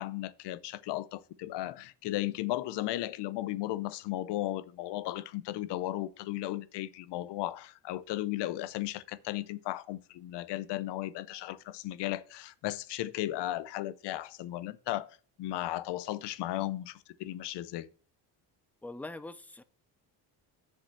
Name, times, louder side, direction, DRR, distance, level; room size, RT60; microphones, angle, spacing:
voice 1, 0.0-15.1 15.4-17.9, left 15 dB, 70° left, 0.7 m, -35 dB
voice 2, 18.8-19.6, left 2 dB, 5° left, 0.4 m, -42 dB
7.1 x 5.1 x 6.6 m
cardioid pair, 130°, 43 cm